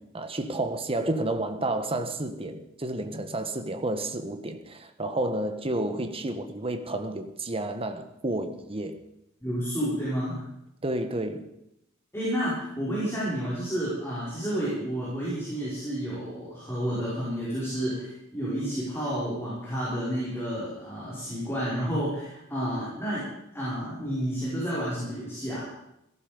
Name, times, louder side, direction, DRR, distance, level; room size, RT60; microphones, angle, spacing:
voice 1, 0.0-8.9 10.8-11.4, right 1 dB, 30° right, 7 dB, 1.4 m, -31 dB
voice 2, 9.4-10.4 12.1-23.3 23.5-25.7, equal, 15° left, -8 dB, 5.1 m, -30 dB
17.0 x 14.5 x 5.2 m, 0.85 s
head